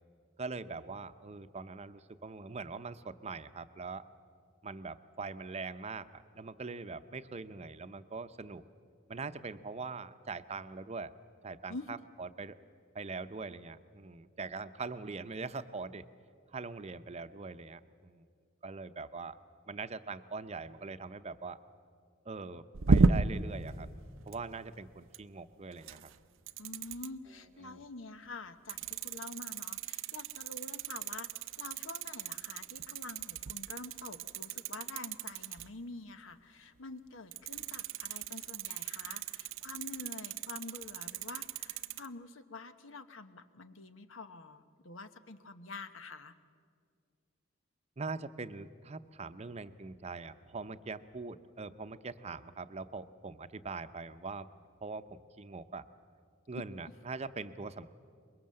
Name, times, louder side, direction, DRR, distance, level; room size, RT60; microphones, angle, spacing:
voice 1, 0.4-4.1 4.6-8.6 9.1-11.1 11.4-12.6 12.9-16.0 16.5-18.2 18.6-19.4 19.7-21.6 22.2-23.9 24.3-26.1 27.6-27.8 48.0-54.5 54.8-55.9 56.5-57.9, right 4 dB, 35° right, 11 dB, 0.7 m, -42 dB
sound 1, 22.7-23.5 24.2-24.5 25.1-25.2 25.7-26.2 26.5-27.1 28.7-35.7 37.3-42.1, right 4 dB, 85° right, 0.6 m, -34 dB
voice 2, 26.6-31.3 31.6-46.3 56.5-56.6, left 3 dB, 85° left, 10 dB, 1.1 m, -47 dB
23.5 x 21.5 x 7.7 m, 2.1 s
head